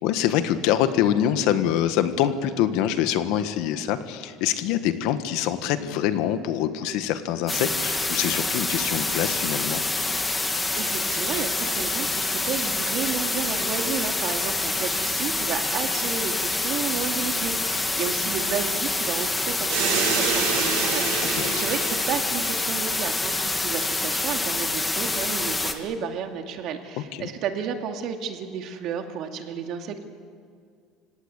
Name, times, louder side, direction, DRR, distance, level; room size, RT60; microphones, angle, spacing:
voice 1, 0.0-9.8 21.3-21.6 27.2-27.3, left 10 dB, 70° left, 10 dB, 1.6 m, -25 dB
sound 1, 7.5-25.7, left 2 dB, 10° left, 1.5 m, -26 dB
voice 2, 10.8-30.0, right 7 dB, 50° right, 5 dB, 2.3 m, -32 dB
sound 2, 19.7-22.2, right 5 dB, 85° right, 7.4 m, -26 dB
29.0 x 17.5 x 8.4 m, 2.2 s
cardioid pair, 155°, 0 cm